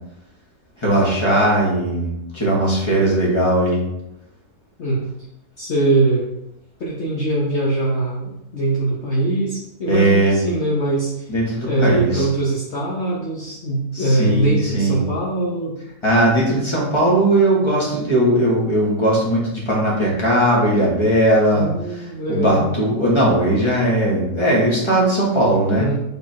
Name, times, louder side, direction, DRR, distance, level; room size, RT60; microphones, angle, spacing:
voice 1, 0.8-3.8 9.9-10.3 11.3-12.3 13.9-15.0 16.0-21.7 22.3-25.9, right 1 dB, 20° left, -5 dB, 2.0 m, -18 dB
voice 2, 5.6-6.2 6.8-11.3 11.6-15.8 21.5-22.8 25.7-26.0, right 2 dB, 50° left, -6 dB, 1.3 m, -22 dB
5.4 x 4.3 x 4.6 m, 0.86 s
omnidirectional pair, 1.6 m